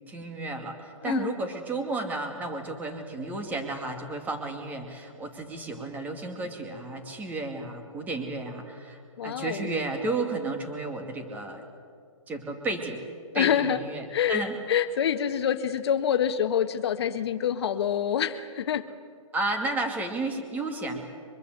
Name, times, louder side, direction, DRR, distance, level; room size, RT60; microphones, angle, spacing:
voice 1, 0.1-11.6 12.3-13.0 13.3-14.6 19.3-21.0, right 2 dB, 10° right, 5 dB, 2.4 m, -32 dB
voice 2, 9.2-9.7 13.3-13.8 14.1-18.9, left 9 dB, 50° left, 10 dB, 1.5 m, -26 dB
24.5 x 23.0 x 8.0 m, 2.2 s
hypercardioid pair, 160°, 17 cm